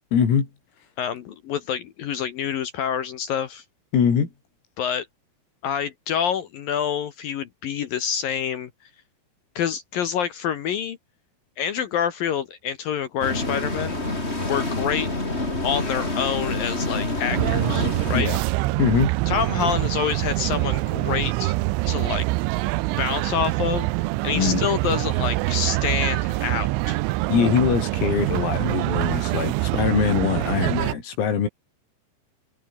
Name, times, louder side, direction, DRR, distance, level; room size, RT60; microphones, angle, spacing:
voice 1, 0.1-0.5 3.9-4.3 18.1-18.4 18.8-19.1 24.3-24.6 27.3-31.5, left 7 dB, 85° left, 7.6 m, -22 dB
voice 2, 1.0-3.6 4.8-5.1 5.6-8.7 9.6-11.0 11.6-14.0 14.5-15.1 15.6-18.3 19.3-21.5 21.9-22.3 23.0-23.9 24.2-27.0, left 8 dB, 70° left, 2.3 m, -27 dB
sound 1, 13.2-18.2, left 2 dB, 15° left, 4.1 m, -27 dB
sound 2, 17.3-30.9, right 20 dB, 80° right, 3.0 m, -25 dB
omnidirectional pair, 5.9 m